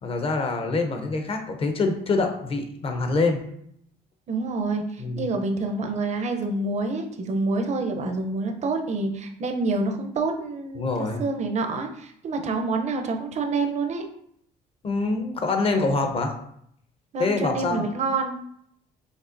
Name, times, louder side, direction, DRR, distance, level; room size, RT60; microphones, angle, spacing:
voice 1, 0.0-3.4 5.0-5.3 10.8-11.2 14.8-16.3 17.2-17.9, left 3 dB, 35° left, 5 dB, 0.7 m, -25 dB
voice 2, 4.3-14.1 17.1-18.4, right 3 dB, 40° right, 5 dB, 0.7 m, -27 dB
5.3 x 3.1 x 2.6 m, 0.70 s
cardioid pair, 110°, 17 cm